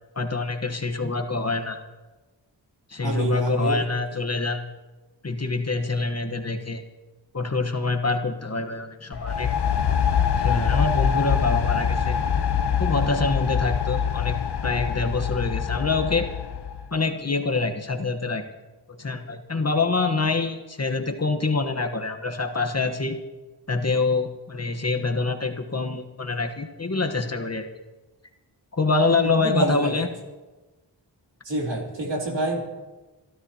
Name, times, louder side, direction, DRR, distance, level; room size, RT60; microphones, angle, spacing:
voice 1, 0.2-1.8 2.9-4.6 5.2-6.8 7.3-9.5 10.4-12.2 12.8-16.3 16.9-18.4 18.9-23.2 23.7-27.7 28.7-30.1, left 3 dB, 35° left, 5 dB, 1.1 m, -25 dB
voice 2, 3.0-3.8 29.1-30.0 31.4-32.6, right 2 dB, 70° right, 0 dB, 3.0 m, -27 dB
sound 1, 9.1-16.9, left 7 dB, 60° left, 0.8 m, -24 dB
27.5 x 13.0 x 2.8 m, 1.2 s
cardioid pair, 55°, 45 cm